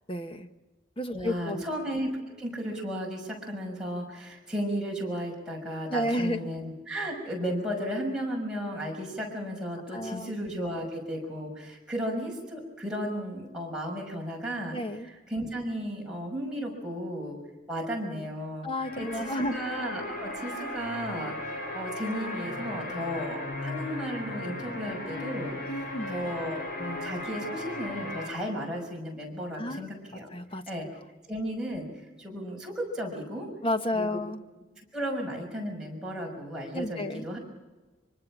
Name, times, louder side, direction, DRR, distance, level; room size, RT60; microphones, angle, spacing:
voice 1, 0.1-0.5 1.0-1.6 5.9-6.5 9.9-10.3 14.7-15.1 18.6-19.6 25.7-26.1 29.5-29.9 30.3-30.6 33.6-34.4 36.7-37.3, left 1 dB, 30° left, 8 dB, 1.1 m, -31 dB
voice 2, 1.1-14.8 15.1-17.4 17.7-18.7 19.0-25.5 26.1-30.3 30.7-30.9 31.3-31.9 32.2-33.5 33.9-34.2 34.9-37.4, equal, 5° right, -3 dB, 5.9 m, -34 dB
sound 1, 18.8-28.3, left 2 dB, 45° left, 7.3 m, -36 dB
25.0 x 25.0 x 6.1 m, 1.2 s
head